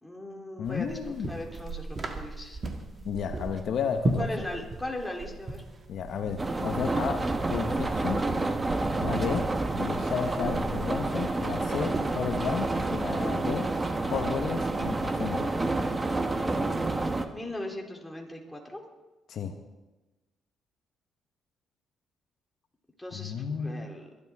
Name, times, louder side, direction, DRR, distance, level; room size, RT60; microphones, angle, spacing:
voice 1, 0.0-1.0 1.3-2.6 4.2-5.6 17.3-18.9 23.0-24.1, left 1 dB, 5° left, 0 dB, 3.1 m, -38 dB
voice 2, 0.6-1.3 3.0-4.3 5.9-8.3 8.9-9.5 9.8-13.7 14.1-15.6 19.3-19.5 23.1-23.9, left 7 dB, 70° left, 6 dB, 1.1 m, -32 dB
sound 1, 0.6-15.0, right 2 dB, 40° right, 1.6 m, -38 dB
sound 2, 6.4-17.3, right 2 dB, 25° right, 1.2 m, -29 dB
22.0 x 12.0 x 3.6 m, 1.1 s
cardioid pair, 90°, 0 cm